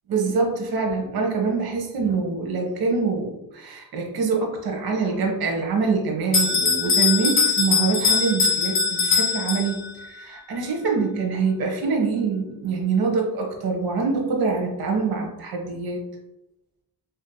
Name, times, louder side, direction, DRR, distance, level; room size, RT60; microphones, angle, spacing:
voice 1, 0.1-16.0, right 4 dB, 80° right, 1 dB, 0.9 m, -25 dB
Bell, 6.3-10.1, left 5 dB, 35° left, 1.1 m, -21 dB
5.1 x 2.7 x 2.2 m, 0.93 s
wide cardioid pair, 135°, 36 cm